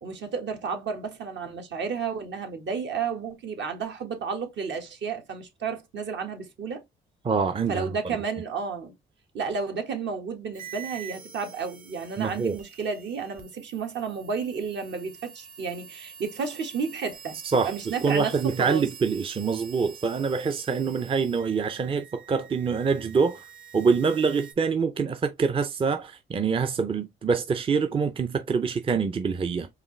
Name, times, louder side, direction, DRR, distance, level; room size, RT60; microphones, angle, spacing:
voice 1, 0.0-6.8 7.7-8.9 9.3-17.4 17.6-18.8, right 5 dB, 65° right, 1.5 m, -32 dB
voice 2, 7.2-7.9 12.2-12.6 17.5-23.4 23.7-29.7, right 5 dB, 25° right, 0.5 m, -25 dB
sound 1, 10.5-24.5, right 7 dB, 45° right, 1.3 m, -46 dB
4.8 x 2.9 x 3.2 m
cardioid pair, 90°, 20 cm